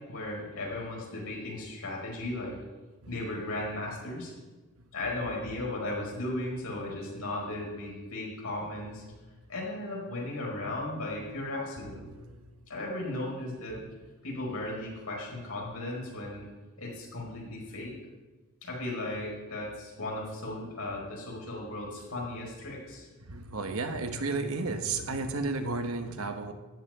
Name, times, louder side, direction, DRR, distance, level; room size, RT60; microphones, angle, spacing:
voice 1, 0.0-2.6 3.1-4.3 4.9-9.0 9.5-12.0 12.7-13.9 14.2-16.5 16.8-17.9 18.6-23.1, left 1 dB, 80° left, -3 dB, 4.8 m, -36 dB
voice 2, 11.8-12.4 23.3-26.5, right 3 dB, 75° right, 7 dB, 1.2 m, -33 dB
13.0 x 5.6 x 9.1 m, 1.2 s
head